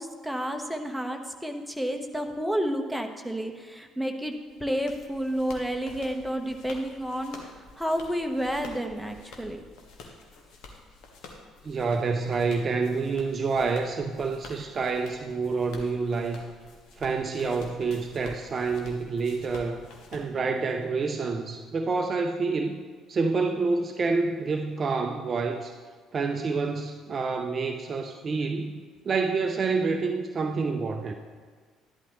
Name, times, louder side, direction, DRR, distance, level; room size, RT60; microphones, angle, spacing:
voice 1, 0.0-4.3 4.6-7.4 7.8-9.6 16.0-16.1, equal, ahead, 3 dB, 1.1 m, -30 dB
sound 1, 4.3-20.9, left 3 dB, 55° left, 1.3 m, -49 dB
voice 2, 11.6-16.4 17.0-19.8 20.1-22.8 23.1-25.8 26.1-28.8 29.1-31.1, right 4 dB, 35° right, 6 dB, 0.6 m, -28 dB
12.5 x 11.0 x 3.1 m, 1.6 s
figure-of-eight pair, 50°, 0 cm